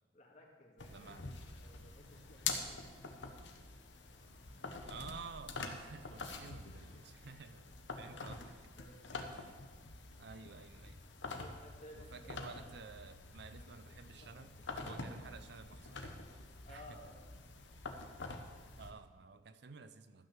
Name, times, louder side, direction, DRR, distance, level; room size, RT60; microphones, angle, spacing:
voice 1, 0.1-1.1 1.6-2.9 5.9-6.3 6.9-7.0 7.9-8.3 8.8-9.3 11.3-12.4 13.6-14.5 14.8-15.0 16.6-17.3, left 1 dB, 40° left, -1 dB, 2.3 m, -58 dB
sound 1, 0.8-18.9, left 4 dB, 85° left, 1.2 m, -46 dB
voice 2, 0.9-1.2 4.9-7.7 8.0-8.5 9.3-9.6 10.2-11.0 11.9-16.0 16.7-17.0 18.8-20.3, right 4 dB, 65° right, 11 dB, 0.6 m, -52 dB
13.0 x 6.0 x 7.4 m, 1.4 s
head